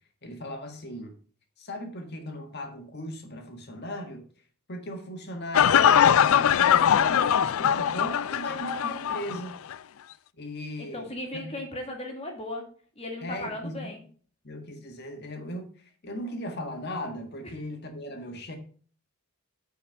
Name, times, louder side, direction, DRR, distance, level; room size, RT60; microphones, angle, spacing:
voice 1, 0.2-1.2 1.6-4.3 4.7-9.6 10.4-11.6 13.2-13.9 14.4-18.6, equal, 50° left, 5 dB, 1.6 m, -38 dB
sound 1, 5.5-9.4 9.7-9.8, left 9 dB, 70° left, 0.3 m, -21 dB
voice 2, 10.8-12.7 13.0-14.0 17.4-17.5, left 1 dB, 30° left, 2 dB, 2.1 m, -36 dB
8.9 x 4.6 x 5.6 m, 0.43 s
head